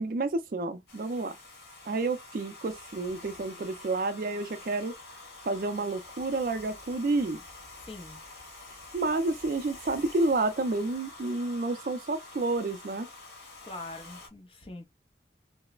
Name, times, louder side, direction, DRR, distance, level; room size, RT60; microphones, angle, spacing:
voice 1, 0.0-1.4 1.9-4.9 5.4-7.4 8.9-13.1, right 2 dB, 50° right, 0.4 m, -30 dB
Domestic sounds home sounds, 0.9-14.3, left 2 dB, 70° left, 1.0 m, -47 dB
voice 2, 7.9-8.2 13.7-14.9, left 2 dB, 30° left, 0.6 m, -43 dB
2.9 x 2.0 x 2.3 m
head